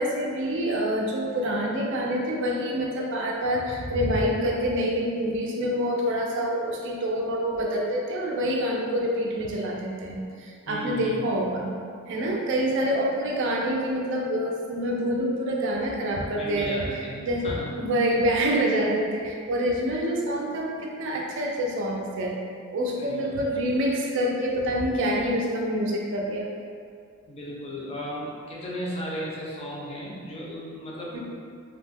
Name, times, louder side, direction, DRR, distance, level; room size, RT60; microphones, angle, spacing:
voice 1, 0.0-11.7 12.1-17.5 17.7-22.4 22.7-26.5 31.1-31.2, equal, 60° right, -1 dB, 0.4 m, -26 dB
voice 2, 10.7-11.2 16.4-17.2 17.4-17.7 23.0-23.3 27.3-31.2, equal, 30° left, -5 dB, 0.5 m, -35 dB
2.8 x 2.0 x 3.4 m, 2.2 s
head